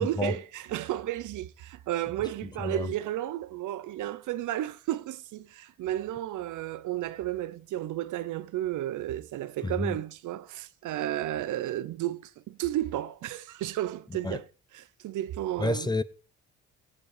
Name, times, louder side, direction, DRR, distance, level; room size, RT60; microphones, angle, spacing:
voice 1, 0.0-14.5 14.7-15.9, right 13 dB, 80° right, 0.8 m, -33 dB
voice 2, 2.6-2.9 9.6-10.0 14.2-14.4 15.6-16.0, left 2 dB, 15° left, 0.8 m, -29 dB
16.5 x 8.7 x 4.9 m
cardioid pair, 90°, 30 cm